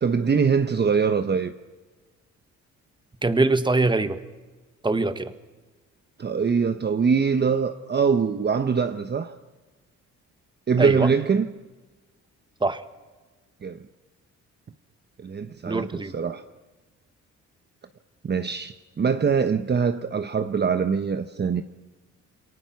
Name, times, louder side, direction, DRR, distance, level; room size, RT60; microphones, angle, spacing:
voice 1, 0.0-1.5 6.2-9.3 10.7-11.5 13.6-13.8 15.2-16.4 18.2-21.6, right 6 dB, 35° right, 1.1 m, -23 dB
voice 2, 3.2-4.2 4.8-5.3 10.8-11.1 12.6-12.8 15.7-16.1, right 3 dB, 15° right, 1.6 m, -23 dB
28.5 x 23.0 x 6.0 m
cardioid pair, 90°, 30 cm